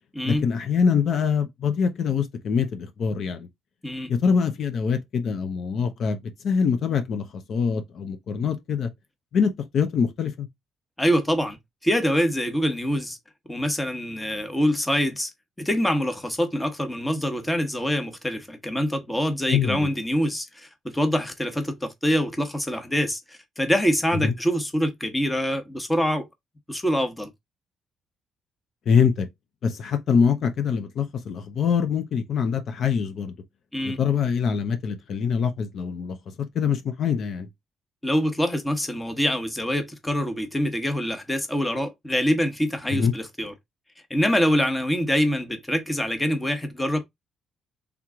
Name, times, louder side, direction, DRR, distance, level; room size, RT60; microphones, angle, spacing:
voice 1, 0.2-3.5 4.1-8.9 9.3-10.5 19.5-19.9 24.1-24.3 28.9-29.3 29.6-33.3 33.8-37.5 42.9-43.1, left 6 dB, 65° left, 0.6 m, -24 dB
voice 2, 11.0-11.6 11.8-13.2 13.5-15.3 15.6-26.3 26.7-27.3 33.7-34.0 38.0-43.5 44.1-47.0, equal, 10° left, 1.0 m, -25 dB
3.6 x 3.0 x 3.6 m
cardioid pair, 90°, 0 cm